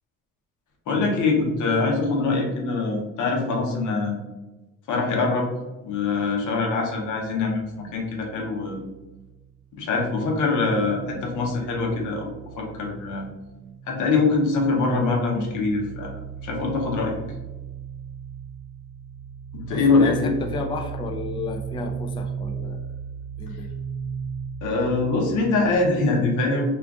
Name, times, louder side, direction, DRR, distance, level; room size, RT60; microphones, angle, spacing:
voice 1, 0.9-4.1 4.9-5.4 5.8-8.8 9.7-12.3 12.6-13.3 13.9-16.1 16.4-17.1 19.5-20.4 24.6-26.7, left 3 dB, 80° left, 0 dB, 0.8 m, -23 dB
sound 1, 5.9-9.7 10.0-25.8, right 7 dB, 85° right, 0.6 m, -37 dB
voice 2, 19.7-22.8 23.4-23.7, left 3 dB, 15° left, 3 dB, 0.3 m, -32 dB
2.4 x 2.4 x 3.5 m, 1.1 s
cardioid pair, 90°, 30 cm